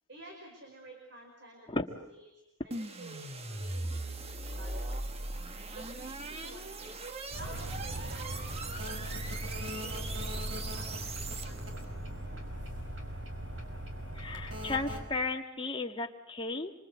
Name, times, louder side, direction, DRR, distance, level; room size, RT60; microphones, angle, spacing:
voice 1, 0.1-2.3 2.6-5.2 5.7-7.0 7.4-12.0, right 1 dB, 60° right, 2 dB, 5.0 m, -51 dB
sound 1, 2.7-11.8, right 2 dB, 30° right, 1.2 m, -39 dB
sound 2, 7.3-15.1, right 1 dB, 75° right, 5.3 m, -39 dB
voice 2, 14.2-16.7, left 3 dB, 25° left, 3 dB, 1.7 m, -34 dB
27.0 x 25.0 x 8.1 m, 0.83 s
head